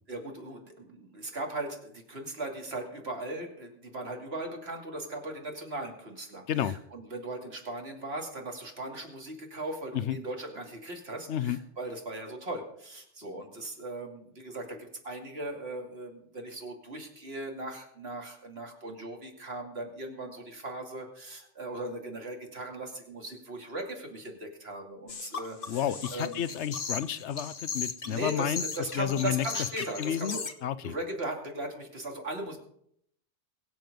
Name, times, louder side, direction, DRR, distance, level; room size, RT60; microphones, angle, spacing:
voice 1, 0.1-25.8 26.1-26.4 28.0-30.4 30.8-32.6, right 2 dB, 65° right, 2 dB, 2.9 m, -38 dB
voice 2, 6.5-6.8 9.9-10.2 11.3-11.6 25.7-28.6 28.9-29.4 30.0-31.0, left 10 dB, 85° left, 16 dB, 1.0 m, -31 dB
sound 1, 25.1-30.5, left 5 dB, 55° left, 1.4 m, -37 dB
23.0 x 7.8 x 5.3 m, 0.71 s
omnidirectional pair, 1.1 m